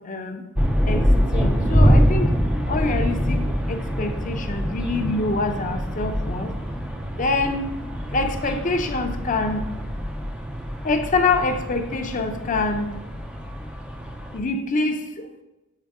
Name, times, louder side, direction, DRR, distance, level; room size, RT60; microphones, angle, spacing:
voice 1, 0.1-0.4 0.8-1.0 1.3-2.3 2.7-3.4 3.7-6.5 7.2-7.7 8.1-9.6 10.8-12.9 14.3-15.0, left 3 dB, 40° left, 6 dB, 0.6 m, -25 dB
sound 1, 0.5-14.4, equal, 5° right, 0.5 m, -24 dB
7.4 x 4.5 x 3.5 m, 1.0 s
head